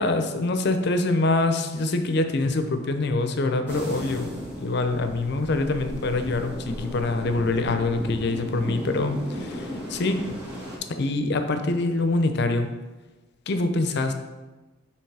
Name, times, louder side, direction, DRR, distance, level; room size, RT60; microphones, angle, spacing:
voice 1, 0.0-4.3 4.6-10.2 10.9-12.7 13.5-14.1, left 2 dB, 55° left, 8 dB, 0.6 m, -25 dB
sound 1, 3.7-10.8, equal, 10° right, 1.8 m, -35 dB
7.1 x 3.5 x 4.7 m, 1.1 s
head